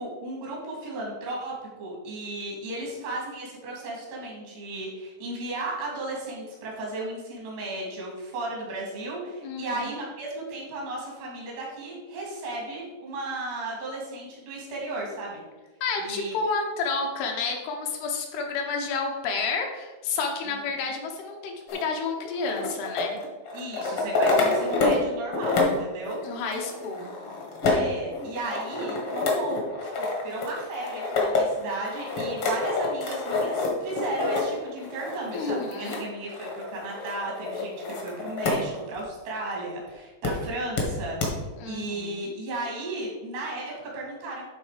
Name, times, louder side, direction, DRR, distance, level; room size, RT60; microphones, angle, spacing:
voice 1, 0.0-15.4 16.0-16.4 20.5-20.6 20.9-21.0 23.5-26.2 27.6-29.6 29.8-41.2 41.7-44.4, right 2 dB, 80° right, -2 dB, 4.6 m, -35 dB
voice 2, 9.4-10.0 15.8-23.2 26.2-27.1 35.3-36.0 41.6-42.3, left 4 dB, 75° left, 2 dB, 2.9 m, -30 dB
sound 1, 21.7-25.1 25.3-38.6 39.0-39.1 40.2-40.3 40.8-40.9 41.2-41.3, left 3 dB, 55° left, 1.6 m, -28 dB
11.5 x 3.9 x 5.0 m, 1.2 s
omnidirectional pair, 4.7 m